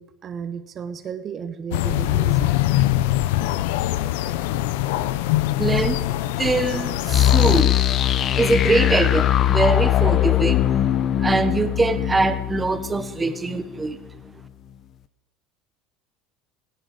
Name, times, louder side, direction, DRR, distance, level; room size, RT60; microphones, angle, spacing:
voice 1, 0.0-2.5, right 7 dB, 40° right, 10 dB, 1.1 m, -33 dB
sound 1, 1.7-7.6, left 15 dB, 85° left, 0.7 m, -23 dB
voice 2, 5.6-7.7 8.4-10.7 11.0-14.0, right 3 dB, 15° right, 11 dB, 1.3 m, -23 dB
sound 2, 7.1-13.9, left 12 dB, 45° left, 0.9 m, -20 dB
16.5 x 16.0 x 5.0 m, 0.94 s
supercardioid pair, 120°, 0 cm